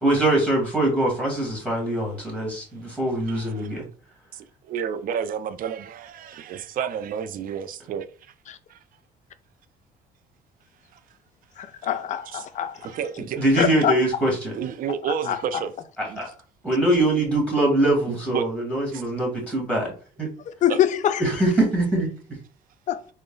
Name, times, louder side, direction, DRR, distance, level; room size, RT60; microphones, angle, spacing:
voice 1, 0.0-3.9 13.4-14.5 16.0-16.3 16.6-19.9 20.2-20.3 21.2-22.1, right 1 dB, 5° left, 1.8 m, -23 dB
voice 2, 3.3-3.8 4.3-8.3 8.7-8.8 10.9-11.0 12.3-12.5 12.8-13.7 14.6-15.7 16.1-16.2 18.1-18.5 18.9-19.0 20.7-20.8, right 8 dB, 55° right, 0.5 m, -31 dB
voice 3, 11.6-12.7 13.6-13.9 15.3-15.4 20.6-21.2 22.9-23.0, left 10 dB, 45° left, 0.4 m, -23 dB
3.8 x 2.1 x 3.8 m
cardioid pair, 110°, 17 cm